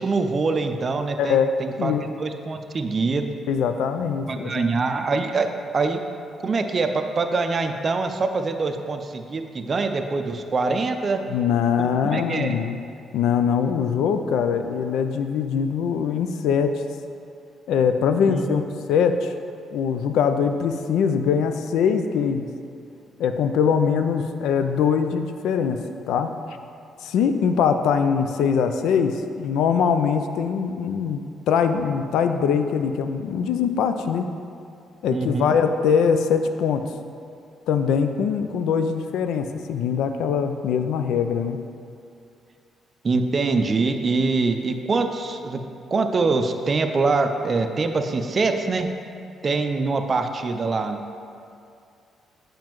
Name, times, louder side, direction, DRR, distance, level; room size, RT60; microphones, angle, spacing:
voice 1, 0.0-3.3 4.3-5.5 5.7-6.0 6.4-11.2 11.8-12.6 18.3-18.6 35.1-35.6 43.0-45.6 45.9-48.9 49.4-51.0, right 3 dB, 40° right, 6 dB, 0.4 m, -24 dB
voice 2, 1.2-2.0 3.5-4.8 11.3-12.8 13.1-16.8 17.7-19.3 19.7-22.5 23.2-25.8 26.1-26.3 27.0-34.3 35.0-36.8 37.7-41.6, left 6 dB, 85° left, 8 dB, 0.3 m, -22 dB
7.4 x 5.0 x 3.0 m, 2.4 s
cardioid pair, 90°, 0 cm